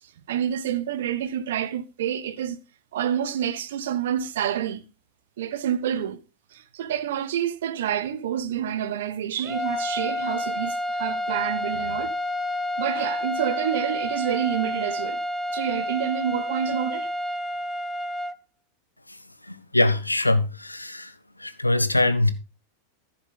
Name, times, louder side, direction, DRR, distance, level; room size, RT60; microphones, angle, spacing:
voice 1, 0.3-2.6 2.9-4.9 5.4-6.2 6.5-12.1 12.8-15.2 15.5-17.1, right 9 dB, 60° right, 1.2 m, -28 dB
sound 1, 9.4-18.3, left 1 dB, ahead, 0.9 m, -29 dB
voice 2, 19.4-21.1 21.4-22.3, left 2 dB, 85° left, 1.2 m, -23 dB
14.5 x 7.2 x 3.9 m
figure-of-eight pair, 90°, 0 cm